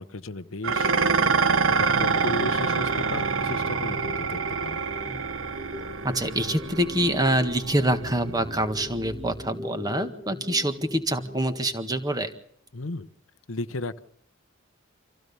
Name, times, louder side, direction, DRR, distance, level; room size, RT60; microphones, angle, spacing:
voice 1, 0.0-4.8 12.7-13.1 13.5-14.0, left 2 dB, 70° left, 14 dB, 0.9 m, -35 dB
Dishes pots and pans, 0.6-9.5, right 5 dB, 65° right, 1.1 m, -27 dB
sound 1, 0.8-11.8, left 2 dB, 35° right, 1.7 m, -41 dB
voice 2, 6.0-12.3, right 1 dB, 20° right, 9 dB, 1.7 m, -25 dB
26.0 x 16.0 x 6.9 m, 0.70 s
head